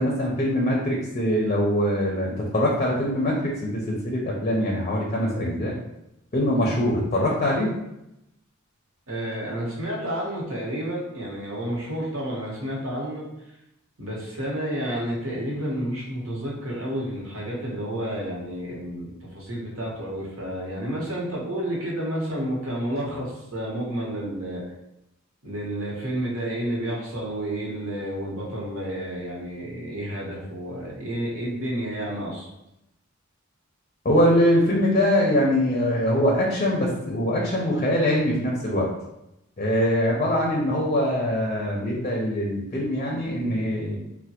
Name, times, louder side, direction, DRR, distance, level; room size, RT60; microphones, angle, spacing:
voice 1, 0.0-3.3 3.6-5.7 6.3-7.7 34.0-38.9 39.6-44.0, equal, 35° left, -2 dB, 0.5 m, -23 dB
voice 2, 9.1-13.3 14.0-24.6 25.4-32.5, right 1 dB, 80° right, -3 dB, 1.0 m, -30 dB
3.3 x 2.1 x 2.8 m, 0.86 s
head